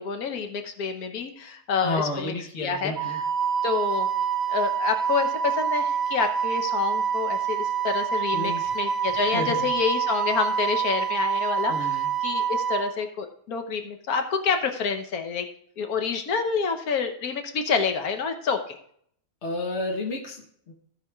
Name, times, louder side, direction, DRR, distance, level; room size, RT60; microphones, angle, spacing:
voice 1, 0.0-2.3 2.6-3.2 3.6-4.1 4.5-15.5 15.8-18.8, left 5 dB, 85° left, 6 dB, 1.5 m, -28 dB
voice 2, 1.8-3.2 8.3-8.7 9.1-9.7 11.7-12.1 19.4-20.7, left 2 dB, 50° left, 1 dB, 1.6 m, -31 dB
Wind instrument woodwind instrument, 3.0-12.9, right 7 dB, 50° right, 1.2 m, -26 dB
16.0 x 5.8 x 3.5 m, 0.65 s
omnidirectional pair, 1.5 m